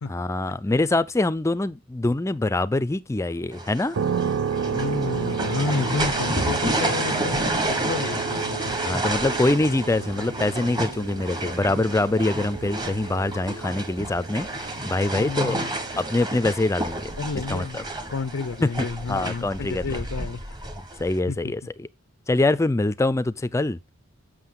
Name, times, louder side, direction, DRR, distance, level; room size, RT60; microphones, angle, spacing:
voice 1, 0.1-4.0 8.8-15.6 16.0-17.1 17.5-17.8 18.6-20.0 21.0-21.9 22.3-23.8, left 2 dB, 15° left, 0.4 m, -24 dB
sound 1, 3.5-21.2, right 1 dB, 20° right, 1.2 m, -30 dB
sound 2, 3.9-18.6, right 6 dB, 70° right, 0.5 m, -33 dB
voice 2, 4.7-8.8 15.1-15.8 17.2-17.8 18.1-20.4 21.3-21.5, left 4 dB, 85° left, 0.5 m, -31 dB
sound 3, 8.4-8.5 8.7-9.3 10.1-10.3 11.2-12.5 13.0-13.5 14.1-14.9 15.4-16.1, right 1 dB, 40° right, 1.6 m, -53 dB
7.6 x 6.4 x 3.7 m
head